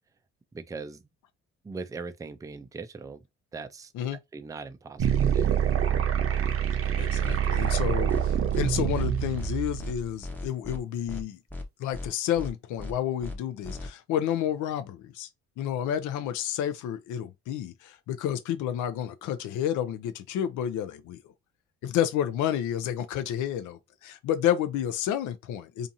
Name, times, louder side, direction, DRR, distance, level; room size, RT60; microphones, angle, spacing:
voice 1, 0.5-1.0 1.6-3.2 3.5-3.9 4.3-5.6 8.3-8.6, right 4 dB, 10° right, 0.3 m, -40 dB
sound 1, 5.0-10.0, right 8 dB, 50° right, 0.6 m, -26 dB
voice 2, 6.8-11.4 11.8-15.3 15.6-21.2 21.8-25.9, left 10 dB, 80° left, 0.5 m, -30 dB
sound 2, 7.2-7.4 7.6-7.8 8.1-8.2 8.5-8.6 8.9-9.1 9.4-9.5 9.8-9.9 10.2-10.8 11.1-11.2 11.5-11.6 11.9-12.1 12.4-12.5 12.8-12.9 13.2-13.4 13.6-13.9, left 2 dB, 5° left, 0.7 m, -37 dB
2.7 x 2.5 x 2.6 m
cardioid pair, 90°, 30 cm